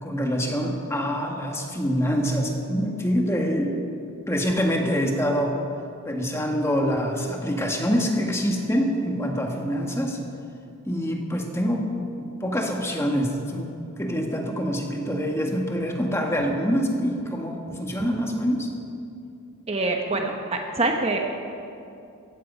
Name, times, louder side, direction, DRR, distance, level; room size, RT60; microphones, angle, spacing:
voice 1, 0.0-3.8 4.3-5.6 6.0-10.2 10.9-11.8 12.2-18.7, equal, 10° left, 1 dB, 1.6 m, -25 dB
voice 2, 19.7-21.3, right 2 dB, 30° right, 3 dB, 1.0 m, -25 dB
16.5 x 15.5 x 5.5 m, 2.6 s
head